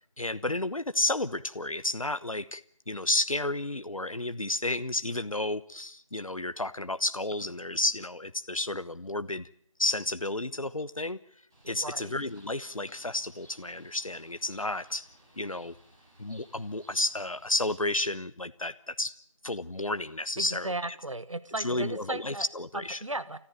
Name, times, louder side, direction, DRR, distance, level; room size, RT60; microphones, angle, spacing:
voice 1, 0.2-2.6 2.9-9.5 9.8-11.2 11.7-15.1 15.4-15.7 16.2-19.1 19.4-20.7 21.6-23.0, left 2 dB, 85° left, 12 dB, 1.0 m, -31 dB
Bird, 11.5-17.8, right 1 dB, 5° right, 2.2 m, -58 dB
voice 2, 11.7-12.1 20.4-22.5 23.0-23.4, right 2 dB, 65° right, 14 dB, 1.3 m, -35 dB
29.5 x 14.5 x 8.8 m, 0.62 s
figure-of-eight pair, 175°, 17 cm